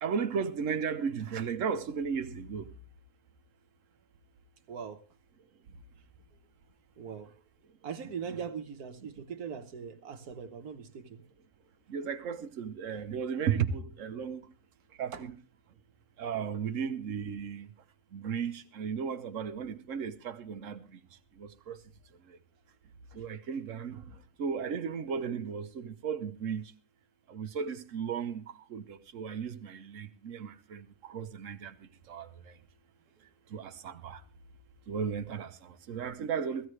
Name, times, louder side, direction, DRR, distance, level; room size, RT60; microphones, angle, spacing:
voice 1, 0.0-2.7 8.3-8.4 11.9-14.5 15.0-15.3 16.2-17.7 18.1-21.0 21.4-21.8 23.1-24.0 24.4-26.6 27.3-28.4 28.7-31.7 32.1-32.5 33.5-34.2 34.9-36.7, right 7 dB, 60° right, 1.2 m, -35 dB
voice 2, 4.7-5.0 7.0-7.3 7.8-11.2 15.1-15.2, right 6 dB, 75° right, 1.6 m, -40 dB
15.5 x 15.0 x 3.2 m
omnidirectional pair, 1.6 m